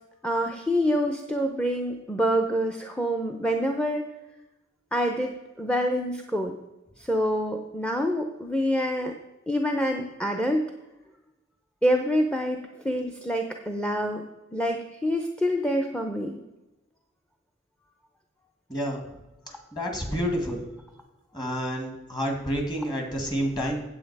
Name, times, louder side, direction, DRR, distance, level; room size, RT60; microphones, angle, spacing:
voice 1, 0.2-4.0 4.9-5.3 5.6-6.5 7.1-9.1 9.5-10.7 11.8-12.6 12.8-14.2 14.5-16.4, equal, 5° left, 4 dB, 0.6 m, -26 dB
voice 2, 18.7-19.0 19.7-20.7 21.3-23.8, equal, 20° left, 2 dB, 1.9 m, -29 dB
8.7 x 7.8 x 4.7 m, 1.0 s
head